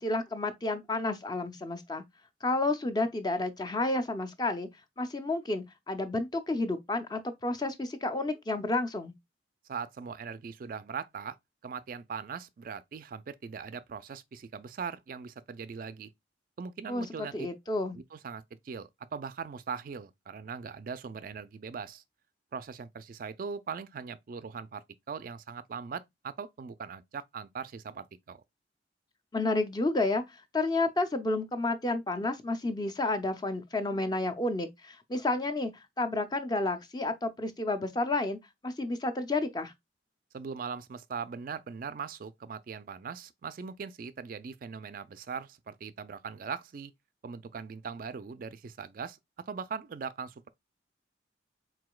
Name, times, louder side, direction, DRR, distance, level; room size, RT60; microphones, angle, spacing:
voice 1, 0.0-2.0 2.4-4.7 5.0-9.1 16.9-18.0 29.3-35.7 36.0-38.4 38.6-39.7, left 2 dB, 20° left, 0.5 m, -31 dB
voice 2, 9.7-11.4 11.6-16.1 16.6-17.3 17.9-22.0 22.5-28.4 40.3-46.9 47.2-49.2 49.5-50.5, right 6 dB, 50° right, 0.3 m, -40 dB
4.8 x 3.8 x 2.2 m
head